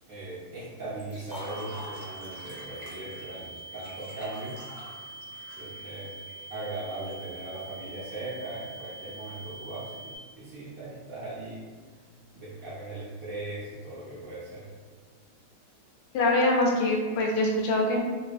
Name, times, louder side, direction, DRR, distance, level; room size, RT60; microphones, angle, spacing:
voice 1, 0.1-4.6 5.6-6.2 6.5-11.7 12.3-14.7, right 2 dB, 75° right, -9 dB, 0.8 m, -39 dB
Liquid, 1.0-7.1, equal, 20° right, 1.4 m, -46 dB
sound 1, 1.3-10.2, right 2 dB, 55° right, 1.0 m, -44 dB
voice 2, 16.1-18.0, left 1 dB, 80° left, 0 dB, 1.5 m, -24 dB
3.3 x 2.7 x 2.4 m, 1.5 s
omnidirectional pair, 2.3 m